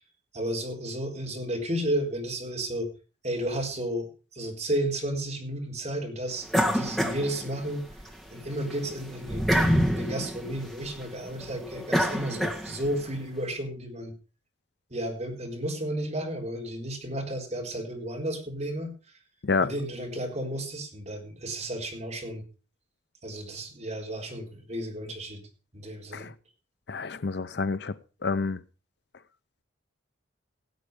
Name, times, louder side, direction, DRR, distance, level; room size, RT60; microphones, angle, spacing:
voice 1, 0.3-2.9 3.2-4.1 4.3-7.9 8.3-14.1 14.9-18.9 19.6-22.4 23.2-25.4 25.7-26.3, right 1 dB, 35° right, 4.1 m, -33 dB
sound 1, 6.5-8.0 8.4-13.0, equal, ahead, 1.7 m, -27 dB
voice 2, 26.9-27.9 28.2-28.6, left 4 dB, 60° left, 0.6 m, -28 dB
17.0 x 8.4 x 5.0 m
head